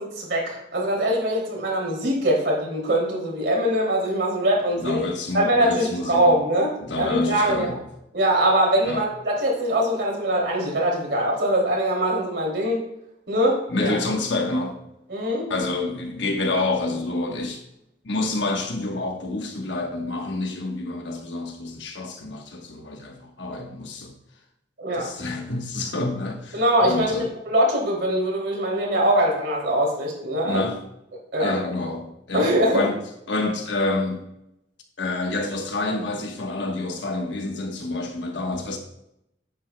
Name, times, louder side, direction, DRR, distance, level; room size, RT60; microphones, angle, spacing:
voice 1, 0.0-5.0 5.3-7.8 8.1-12.9 13.3-14.0 15.1-15.5 24.8-25.1 26.5-30.6 31.3-31.5 32.3-32.9, right 1 dB, 75° right, -2 dB, 2.7 m, -22 dB
voice 2, 4.7-6.4 6.8-7.9 8.8-9.0 13.7-14.8 15.5-17.6 18.0-24.1 24.9-27.3 30.4-30.8 31.4-33.0 33.3-34.3 35.0-38.8, left 2 dB, 80° left, 3 dB, 1.1 m, -28 dB
9.8 x 7.8 x 2.2 m, 0.81 s
head